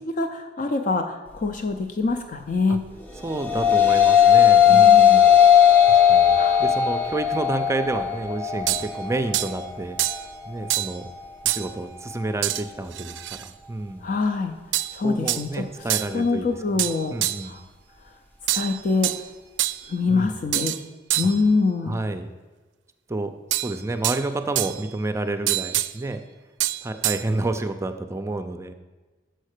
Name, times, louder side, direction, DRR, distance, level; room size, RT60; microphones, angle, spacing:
voice 1, 0.2-2.8 4.7-5.3 6.4-6.6 14.0-14.5 14.9-15.6 16.1-17.1 17.4-17.6 18.5-19.1 19.9-20.8 21.2-22.0, left 4 dB, 45° left, 6 dB, 0.5 m, -24 dB
sound 1, 3.1-12.3, left 9 dB, 10° left, 0.9 m, -18 dB
voice 2, 3.2-5.4 5.9-10.0 10.5-11.1 11.4-13.2 13.4-14.1 15.0-16.8 17.1-17.6 20.1-20.4 21.2-21.3 21.9-22.3 23.1-26.2 26.8-28.7, right 2 dB, 15° right, 8 dB, 0.5 m, -30 dB
sound 2, 8.7-8.9 9.3-9.5 10.0-10.3 10.7-11.0 11.5-11.7 12.4-12.6 12.9-13.5 14.7-15.0 15.3-15.5 15.9-16.1 16.8-17.5 18.5-19.2 19.6-19.9 20.5-20.8 21.1-21.4 23.5-24.2 24.6-24.9 25.5-25.9 26.6-27.2, right 15 dB, 75° right, 0.4 m, -26 dB
6.5 x 5.4 x 6.5 m, 1.3 s
head